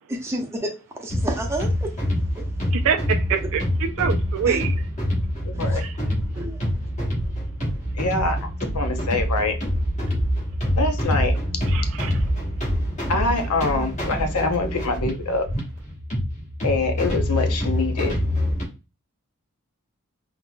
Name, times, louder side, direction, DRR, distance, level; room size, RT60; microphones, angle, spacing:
voice 1, 0.2-0.7 1.0-1.9 2.4-2.5 4.5-4.6 5.5-5.8 6.3-6.6, right 1 dB, 10° right, 0.6 m, -30 dB
sound 1, 1.1-18.6, equal, 35° left, 1.1 m, -25 dB
voice 2, 2.7-4.7 5.8-5.9 11.7-12.1, right 7 dB, 65° right, 0.4 m, -25 dB
voice 3, 5.4-5.8 7.9-8.4 8.7-9.6 10.8-11.4 13.1-15.5 16.6-18.1, left 3 dB, 85° left, 0.7 m, -24 dB
3.8 x 2.8 x 2.2 m
head